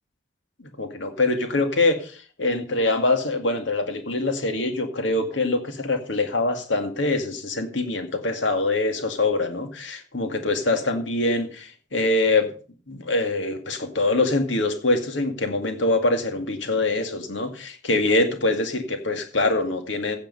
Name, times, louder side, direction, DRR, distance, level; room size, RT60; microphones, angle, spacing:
voice 1, 0.6-12.5 12.9-20.2, left 2 dB, 85° left, 7 dB, 2.2 m, -24 dB
16.0 x 6.8 x 5.5 m, 0.40 s
head